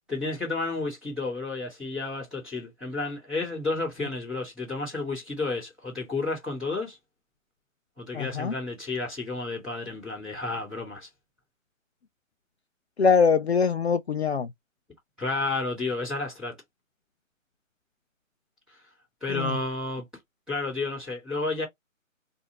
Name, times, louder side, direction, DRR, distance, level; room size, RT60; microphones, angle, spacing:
voice 1, 0.1-7.0 8.0-11.1 15.2-16.6 19.2-20.0 20.5-21.7, left 3 dB, ahead, 1.3 m, -31 dB
voice 2, 8.1-8.6 13.0-14.5 19.3-19.6, left 5 dB, 50° left, 0.5 m, -23 dB
4.5 x 2.7 x 2.9 m
hypercardioid pair, 165°, 40 cm